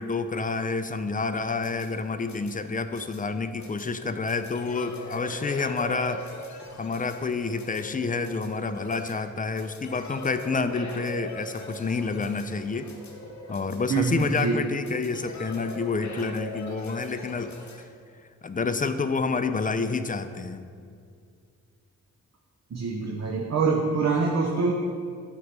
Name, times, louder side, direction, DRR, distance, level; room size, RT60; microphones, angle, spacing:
voice 1, 0.0-6.3 6.8-12.9 13.5-17.9 18.4-20.7, left 4 dB, 25° left, 10 dB, 0.4 m, -29 dB
sound 1, 1.3-17.8, left 2 dB, 65° left, 0.9 m, -41 dB
voice 2, 13.9-14.6 22.7-24.7, right 4 dB, 55° right, 0 dB, 0.7 m, -25 dB
7.8 x 3.0 x 5.2 m, 2.2 s
cardioid pair, 45°, 31 cm